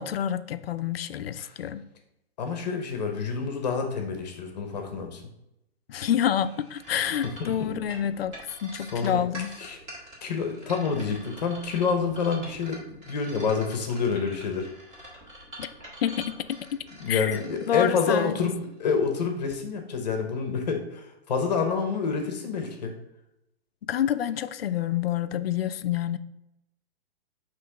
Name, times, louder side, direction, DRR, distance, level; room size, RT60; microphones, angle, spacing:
voice 1, 0.0-1.8 5.9-9.5 15.6-15.7 16.0-16.2 17.1-17.4 17.7-18.4 23.8-26.2, left 10 dB, 65° left, 12 dB, 0.5 m, -28 dB
voice 2, 2.4-5.2 7.2-7.7 8.9-9.2 9.6-9.8 10.2-14.7 17.0-22.9, left 5 dB, 40° left, 4 dB, 1.0 m, -28 dB
sound 1, 6.4-18.9, right 1 dB, 20° right, 1.7 m, -45 dB
6.0 x 3.1 x 5.8 m, 0.85 s
hypercardioid pair, 170°, 32 cm